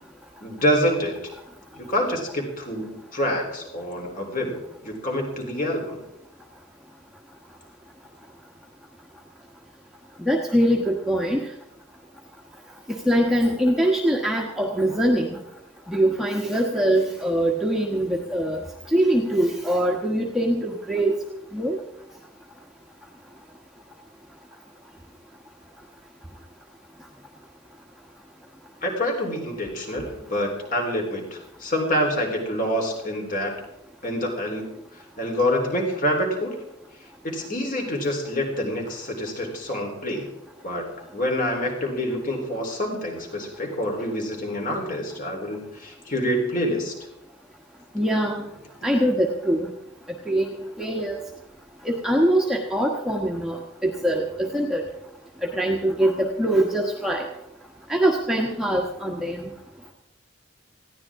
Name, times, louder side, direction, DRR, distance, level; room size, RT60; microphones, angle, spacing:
voice 1, 0.4-1.1 1.8-4.6 4.8-6.0 28.8-33.6 34.0-34.7 35.2-36.5 37.2-40.3 40.6-40.9 41.1-46.9, equal, 40° left, 2 dB, 3.9 m, -26 dB
voice 2, 10.2-11.4 13.1-15.4 15.9-18.6 18.9-21.1 21.5-21.8 47.9-48.4 48.8-49.7 50.3-50.5 50.8-51.2 51.8-54.8 55.5-57.2 57.9-59.5, right 1 dB, ahead, -1 dB, 1.3 m, -23 dB
20.0 x 15.5 x 3.7 m, 0.84 s
head